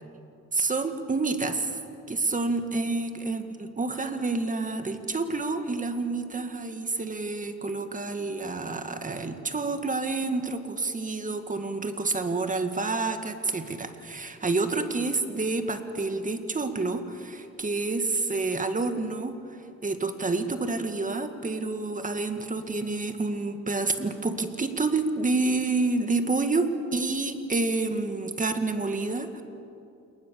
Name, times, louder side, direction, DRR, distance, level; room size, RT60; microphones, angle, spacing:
voice 1, 0.5-1.8 2.1-26.7 26.9-29.4, right 3 dB, 25° right, 7 dB, 2.0 m, -28 dB
28.5 x 20.0 x 7.1 m, 2.6 s
cardioid pair, 90°, 30 cm